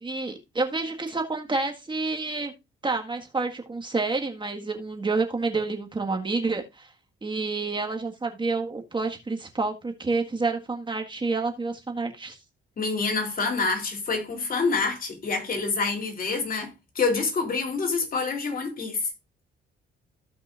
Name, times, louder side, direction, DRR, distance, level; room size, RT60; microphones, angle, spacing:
voice 1, 0.0-2.5 2.8-6.9 7.2-12.4, right 3 dB, 25° right, 1.7 m, -29 dB
voice 2, 12.8-19.1, left 4 dB, 45° left, 3.3 m, -27 dB
16.0 x 5.4 x 2.5 m
cardioid pair, 90°, 20 cm